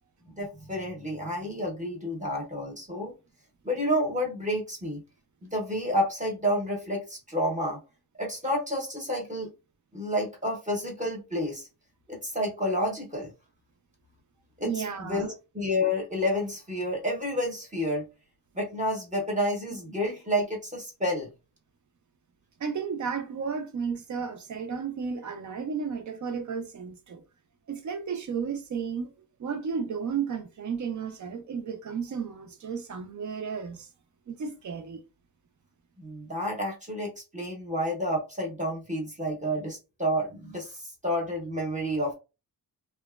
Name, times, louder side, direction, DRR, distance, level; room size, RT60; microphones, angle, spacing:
voice 1, 0.3-3.1 3.6-5.0 5.4-7.8 8.2-9.5 9.9-11.7 12.1-13.3 14.6-18.0 18.5-21.3 36.0-42.1, equal, 20° right, 0.8 m, -30 dB
voice 2, 14.6-15.3 22.6-27.2 27.7-29.1 29.4-33.9 34.3-35.0, right 6 dB, 50° right, 0.6 m, -33 dB
2.8 x 2.2 x 2.3 m
wide cardioid pair, 130°, 39 cm